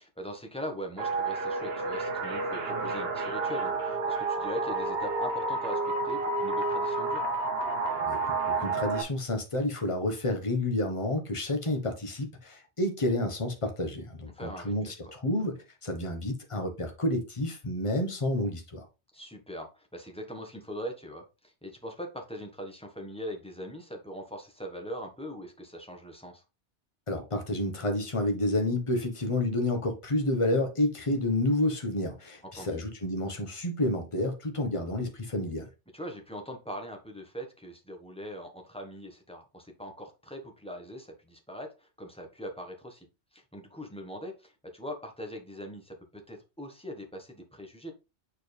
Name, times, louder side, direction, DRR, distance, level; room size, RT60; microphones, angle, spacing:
voice 1, 0.2-7.2 14.3-14.7 15.0-15.1 19.1-26.4 32.5-32.8 35.9-43.1 43.3-47.9, equal, 5° left, 1.2 m, -41 dB
sound 1, 1.0-9.0, right 3 dB, 55° right, 1.3 m, -30 dB
voice 2, 8.0-18.9 27.1-35.7, left 1 dB, 25° left, 1.2 m, -30 dB
6.6 x 4.5 x 3.3 m
omnidirectional pair, 1.2 m